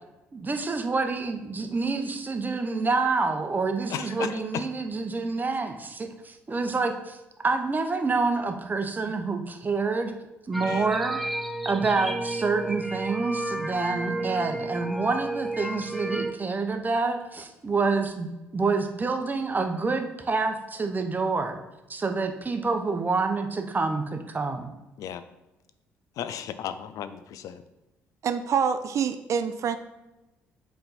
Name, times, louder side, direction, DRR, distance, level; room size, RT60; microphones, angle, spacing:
voice 1, 0.3-7.2 7.4-10.1 10.5-11.2 11.6-21.6 21.9-24.7, right 4 dB, 25° right, 6 dB, 0.9 m, -27 dB
voice 2, 3.9-4.6 5.4-5.5 10.7-10.9 14.2-14.3 25.0-25.2 26.2-27.6, left 9 dB, 60° left, 12 dB, 0.4 m, -35 dB
sound 1, 10.5-16.3, right 2 dB, ahead, 0.6 m, -32 dB
voice 3, 28.2-29.8, right 7 dB, 50° right, 10 dB, 0.4 m, -26 dB
7.7 x 3.5 x 4.2 m, 1.0 s
hypercardioid pair, 50°, 7 cm